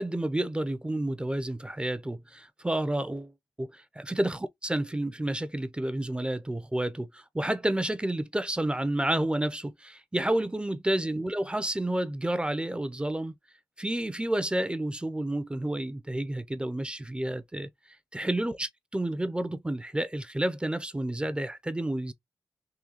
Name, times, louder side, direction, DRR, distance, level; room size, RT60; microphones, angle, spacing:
voice 1, 0.0-3.3 3.6-13.3 13.8-17.7 18.1-22.1, right 1 dB, 10° right, 0.4 m, -30 dB
3.7 x 2.6 x 2.9 m
wide cardioid pair, 95°, 8 cm